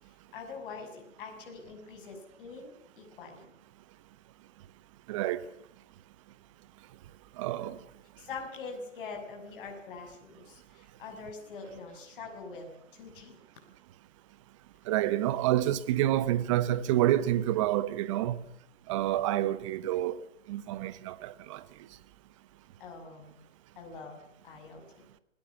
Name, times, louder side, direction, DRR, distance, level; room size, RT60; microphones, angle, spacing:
voice 1, 0.3-3.4 8.2-13.4 22.8-23.4 23.8-24.9, left 4 dB, 45° left, 6.3 m, -44 dB
voice 2, 5.1-5.4 7.4-7.8 14.9-18.4 18.9-20.2 20.5-21.6, right 13 dB, 25° right, 1.1 m, -28 dB
27.0 x 19.0 x 7.2 m
hypercardioid pair, 155°, 38 cm